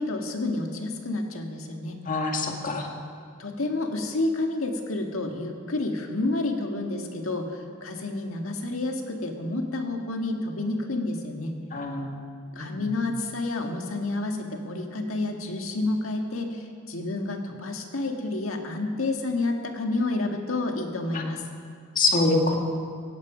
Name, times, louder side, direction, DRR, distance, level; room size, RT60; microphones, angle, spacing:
voice 1, 0.0-2.0 3.4-11.6 12.6-21.4, left 2 dB, 75° left, 3 dB, 1.8 m, -29 dB
voice 2, 2.1-2.9 11.7-12.1 12.6-12.7 22.0-22.6, left 2 dB, 40° left, 2 dB, 1.8 m, -24 dB
17.5 x 16.5 x 5.1 m, 2.2 s
head